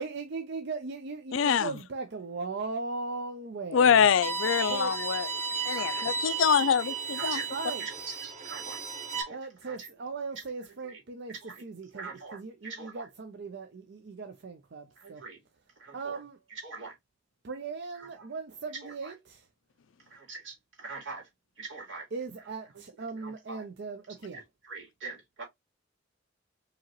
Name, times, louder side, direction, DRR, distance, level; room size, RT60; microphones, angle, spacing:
voice 1, 0.0-4.1 4.7-5.0 7.5-7.8 9.3-15.2 15.9-16.4 17.4-19.5 22.1-24.4, right 4 dB, 60° right, 0.6 m, -38 dB
voice 2, 1.3-1.7 3.7-5.3 5.7-7.4, left 7 dB, 85° left, 0.4 m, -24 dB
Bowed string instrument, 4.2-9.2, right 4 dB, 35° right, 1.3 m, -34 dB
voice 3, 5.5-6.1 6.5-7.5 7.8-8.8 9.1-9.9 10.8-11.0 11.3-11.6 11.9-13.1 15.0-15.4 15.8-16.2 16.5-17.0 17.9-18.3 18.8-19.1 20.1-21.3 21.6-22.1 23.1-23.6 24.3-25.5, right 4 dB, 80° right, 2.4 m, -44 dB
4.9 x 3.0 x 3.0 m
head